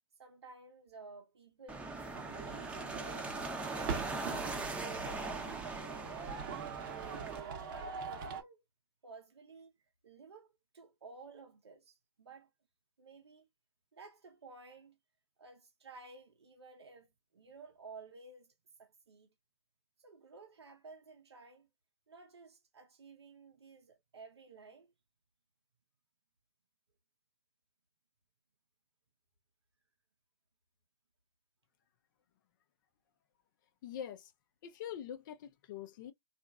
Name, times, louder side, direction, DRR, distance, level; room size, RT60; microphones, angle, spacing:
voice 1, 0.2-2.0 2.3-3.3 3.6-4.1 4.4-6.7 7.3-8.6 9.0-9.7 10.0-12.5 13.0-13.5 13.9-15.0 15.4-17.1 17.3-18.5 18.8-19.3 20.0-21.7 22.1-24.9, right 4 dB, 90° right, 0.7 m, -54 dB
sound 1, 1.7-7.4, right 3 dB, 10° right, 0.7 m, -41 dB
sound 2, 2.1-8.4, right 6 dB, 50° right, 0.8 m, -43 dB
voice 2, 33.8-34.3 34.6-36.1, left 9 dB, 50° left, 0.5 m, -44 dB
2.8 x 2.4 x 2.2 m
hypercardioid pair, 125°, 13 cm